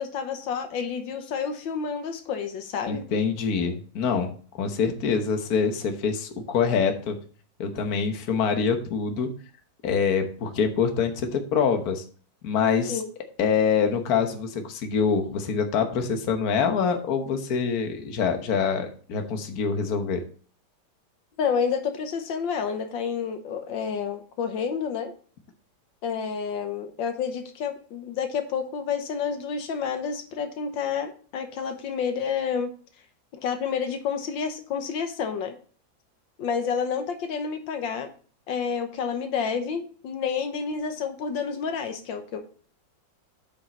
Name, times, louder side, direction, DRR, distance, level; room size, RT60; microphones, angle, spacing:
voice 1, 0.0-3.0 12.9-13.1 21.4-25.1 26.0-32.7 33.3-35.5 36.4-38.1 38.5-42.5, left 6 dB, 85° left, 7 dB, 1.7 m, -29 dB
voice 2, 2.9-4.3 4.6-7.2 7.6-9.3 9.8-12.0 12.4-13.0 13.4-20.2, left 6 dB, 55° left, 5 dB, 1.5 m, -25 dB
8.9 x 5.3 x 4.1 m, 0.43 s
omnidirectional pair, 2.0 m